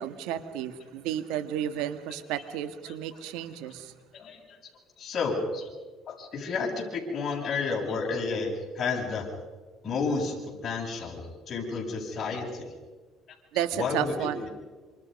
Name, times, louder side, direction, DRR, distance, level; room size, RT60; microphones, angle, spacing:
voice 1, 0.0-3.9 13.5-14.5, right 10 dB, 85° right, 11 dB, 1.7 m, -32 dB
voice 2, 4.1-4.6 5.0-5.7 6.1-9.2 9.8-12.7 13.7-14.5, left 4 dB, 45° left, -1 dB, 7.6 m, -31 dB
27.0 x 26.5 x 5.4 m, 1.4 s
cardioid pair, 95°, 0 cm